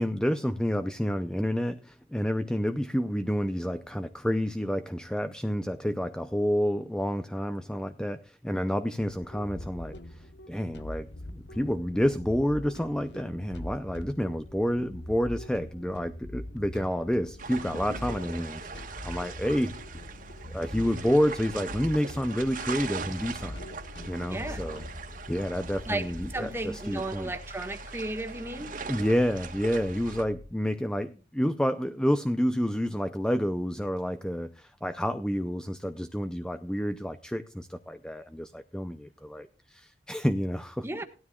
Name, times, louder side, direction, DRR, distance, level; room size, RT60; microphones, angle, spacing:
voice 1, 0.0-19.8 20.5-23.6 24.1-24.8 25.3-26.5 26.9-27.3 28.9-40.8, equal, 5° left, 10 dB, 0.5 m, -29 dB
sound 1, 9.0-26.6, left 1 dB, 70° left, 1.1 m, -43 dB
sound 2, 12.3-30.5, left 2 dB, 20° left, 1.8 m, -50 dB
sound 3, 17.4-30.2, right 4 dB, 45° right, 1.7 m, -41 dB
voice 2, 24.3-24.6 25.8-26.0 26.3-28.7 40.8-41.0, right 2 dB, 15° right, 6 dB, 1.5 m, -34 dB
18.0 x 12.5 x 2.3 m, 0.34 s
head